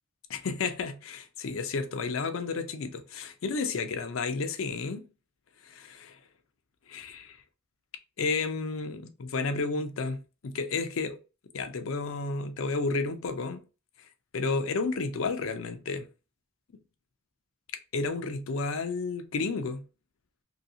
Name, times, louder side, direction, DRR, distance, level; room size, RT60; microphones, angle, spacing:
voice 1, 0.3-5.1 5.6-6.2 6.9-7.2 8.2-11.2 11.5-13.6 14.3-16.1 17.9-19.8, left 4 dB, 70° left, 0.5 m, -32 dB
2.7 x 2.7 x 2.6 m
head